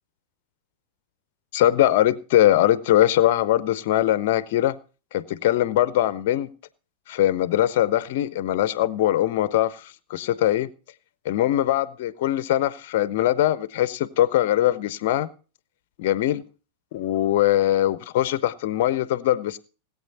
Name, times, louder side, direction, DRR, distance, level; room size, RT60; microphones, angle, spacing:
voice 1, 1.5-4.8 5.1-6.5 7.1-10.7 11.2-15.3 16.0-16.4 16.9-19.6, left 13 dB, 50° left, 0.7 m, -21 dB
18.5 x 8.4 x 4.2 m
figure-of-eight pair, 90°, 0 cm